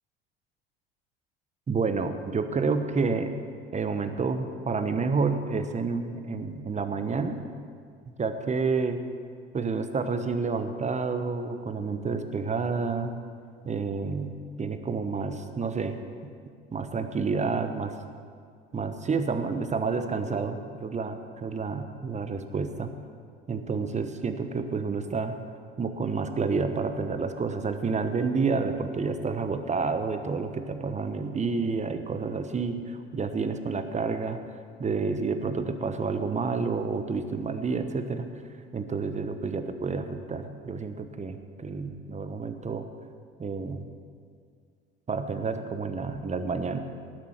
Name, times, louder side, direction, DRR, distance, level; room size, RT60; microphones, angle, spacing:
voice 1, 1.7-3.4 3.7-7.4 8.2-9.0 9.5-13.1 13.6-16.0 16.7-18.0 18.7-22.9 23.5-25.4 25.8-34.4 34.8-38.3 38.7-42.9 43.4-43.9 45.1-46.8, right 4 dB, 25° right, 9 dB, 1.1 m, -29 dB
18.5 x 7.6 x 5.8 m, 2.2 s
figure-of-eight pair, 65°, 31 cm